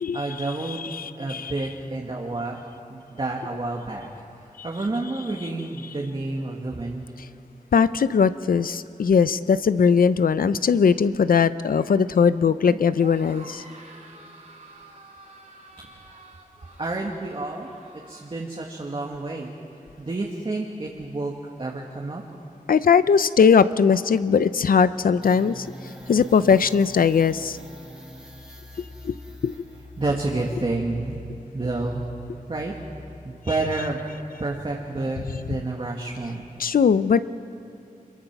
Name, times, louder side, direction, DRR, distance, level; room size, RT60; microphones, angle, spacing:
voice 1, 0.1-0.9 1.2-2.6 2.9-4.1 4.6-7.0 12.7-12.8 16.1-16.2 16.8-17.7 18.1-19.5 20.0-21.3 21.6-22.2 30.0-31.2 31.5-32.0 32.5-32.7 33.2-34.0 34.4-35.2 35.5-36.4, right 2 dB, 35° right, -1 dB, 1.7 m, -29 dB
voice 2, 0.7-1.5 4.6-4.7 7.7-13.6 22.7-25.7 26.1-27.6 29.0-29.2 29.4-29.5 36.6-37.2, left 6 dB, 85° left, 14 dB, 0.6 m, -19 dB
sound 1, 12.9-18.3, right 2 dB, 55° right, 3.2 m, -48 dB
sound 2, 25.2-33.7, left 1 dB, 5° right, 2.9 m, -43 dB
26.0 x 22.5 x 6.0 m, 2.6 s
wide cardioid pair, 120°, 15 cm